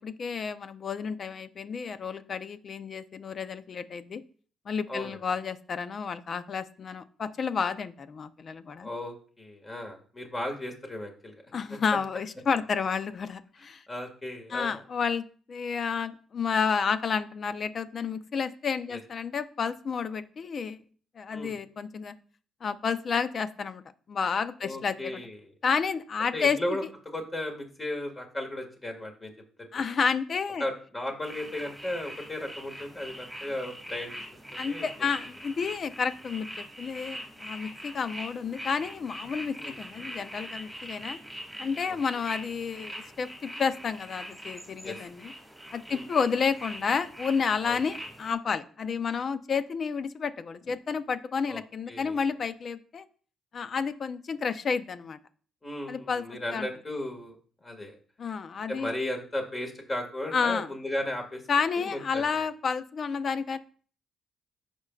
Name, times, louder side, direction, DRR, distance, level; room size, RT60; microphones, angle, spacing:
voice 1, 0.0-4.2 4.7-8.9 11.5-13.8 14.5-20.8 21.2-22.2 22.6-23.8 24.1-25.2 25.6-26.6 29.7-30.6 34.6-41.2 41.6-45.3 45.7-53.0 53.5-55.2 55.9-56.2 56.5-56.7 58.2-58.9 60.3-60.7 61.5-63.6, left 6 dB, 50° left, 12 dB, 0.7 m, -30 dB
voice 2, 4.9-5.2 8.8-11.4 13.6-14.8 18.9-19.0 21.3-21.6 24.6-25.5 26.3-29.3 29.6-29.7 30.6-34.2 34.5-35.1 39.6-39.8 41.9-42.0 44.8-45.0 45.9-46.0 47.6-47.8 51.5-51.6 51.9-52.2 55.6-57.3 57.6-58.0 58.7-61.4 61.8-62.4, left 1 dB, 25° left, 3 dB, 2.1 m, -35 dB
sound 1, 31.2-48.3, equal, ahead, 2.2 m, -43 dB
15.0 x 5.4 x 2.4 m, 0.43 s
cardioid pair, 90°, 0 cm